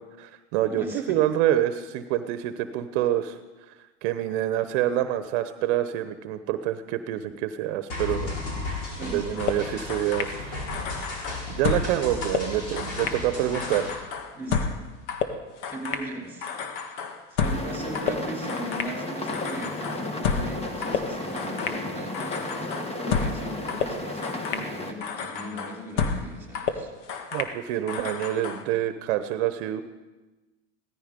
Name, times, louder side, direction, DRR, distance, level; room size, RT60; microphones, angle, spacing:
voice 1, 0.2-3.4 4.0-8.4 9.0-10.5 11.5-14.1 27.3-29.8, right 12 dB, 65° right, 11 dB, 1.0 m, -27 dB
voice 2, 0.7-1.2 9.0-9.5 12.6-13.1 14.3-14.8 15.7-16.6 17.3-22.3 22.9-26.9, right 1 dB, 5° right, 1 dB, 3.5 m, -38 dB
sound 1, 7.9-13.9, left 2 dB, 50° left, 6.6 m, -34 dB
sound 2, 9.4-10.4 10.7-12.0 12.2-13.2 13.5-16.1 16.4-17.7 17.9-19.0 19.3-20.6 20.8-21.8 22.1-23.4 23.7-24.7 25.0-26.3 26.5-27.6 27.9-28.6, left 6 dB, 70° left, 1.7 m, -30 dB
sound 3, 17.4-24.9, left 2 dB, 15° left, 1.5 m, -33 dB
16.5 x 13.5 x 5.3 m, 1.2 s
supercardioid pair, 120°, 37 cm